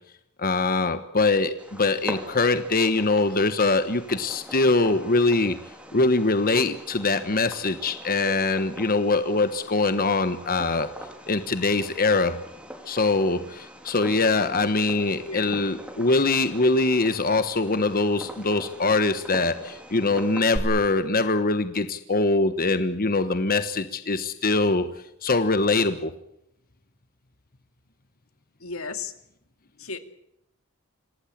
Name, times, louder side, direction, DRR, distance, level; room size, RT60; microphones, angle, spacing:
voice 1, 0.4-5.6 5.9-10.9 11.3-12.4 12.9-24.9 25.2-26.1, left 3 dB, 45° left, 10 dB, 1.3 m, -23 dB
Fireworks, 1.6-20.6, equal, 5° right, 3.8 m, -42 dB
voice 2, 28.6-29.1 29.8-30.0, left 4 dB, 80° left, 9 dB, 2.4 m, -34 dB
27.0 x 18.5 x 8.7 m, 0.79 s
head